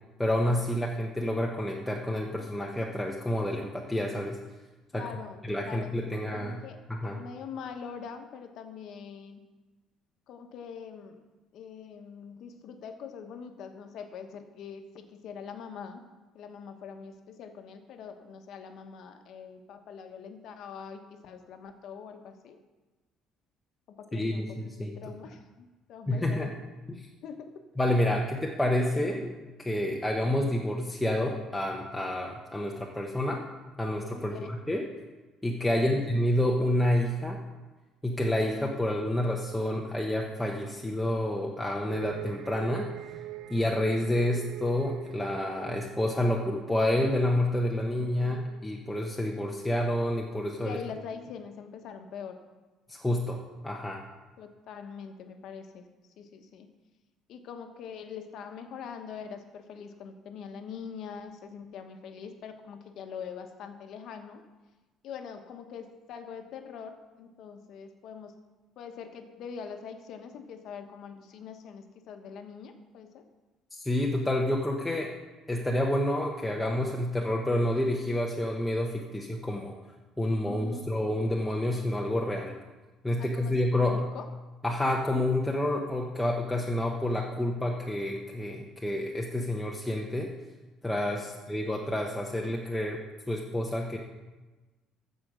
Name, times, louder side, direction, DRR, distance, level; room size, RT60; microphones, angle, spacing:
voice 1, 0.2-4.4 4.9-5.0 5.4-6.6 6.9-7.2 24.1-25.0 26.1-26.5 26.9-27.1 27.8-29.3 29.6-33.4 33.8-34.8 35.4-37.4 38.0-42.9 43.5-50.8 52.9-54.0 73.7-75.1 75.5-79.8 80.2-82.6 83.0-84.1 84.6-90.3 90.8-94.0, left 1 dB, 5° left, -1 dB, 0.8 m, -29 dB
voice 2, 4.9-6.8 7.0-9.4 10.3-11.2 11.5-16.0 16.3-22.6 23.9-26.5 27.2-27.7 28.1-29.0 34.1-34.5 35.8-36.0 47.9-48.5 50.6-52.4 54.4-55.9 56.2-56.7 57.3-64.4 65.0-68.3 68.8-73.2 80.4-80.8 83.2-84.3 91.2-91.4, left 6 dB, 55° left, 6 dB, 1.1 m, -43 dB
sound 1, 41.8-46.8, right 15 dB, 65° right, 0.4 m, -42 dB
14.5 x 5.1 x 6.3 m, 1.2 s
cardioid pair, 160°, 0 cm